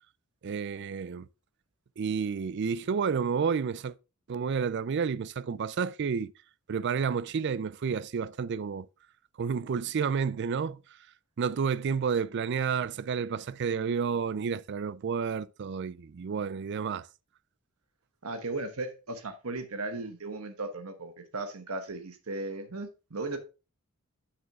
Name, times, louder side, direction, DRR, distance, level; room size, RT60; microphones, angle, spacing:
voice 1, 0.4-1.3 2.0-3.9 4.3-6.3 6.7-8.9 9.4-10.8 11.4-17.1, right 6 dB, 55° right, 0.4 m, -30 dB
voice 2, 18.2-23.4, right 2 dB, 85° right, 1.1 m, -36 dB
8.3 x 6.2 x 3.5 m
head